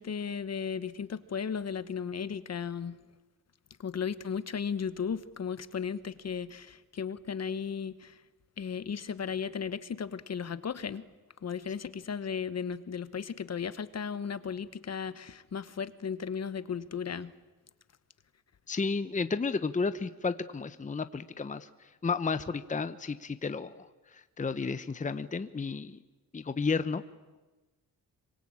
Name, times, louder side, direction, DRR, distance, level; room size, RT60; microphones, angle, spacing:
voice 1, 0.0-3.0 3.8-8.2 8.6-11.0 11.4-17.3, left 6 dB, 45° left, 14 dB, 1.2 m, -35 dB
voice 2, 18.7-26.0 26.3-27.0, left 4 dB, 20° left, 11 dB, 0.9 m, -32 dB
26.0 x 24.0 x 8.8 m, 1.2 s
cardioid pair, 110°, 35 cm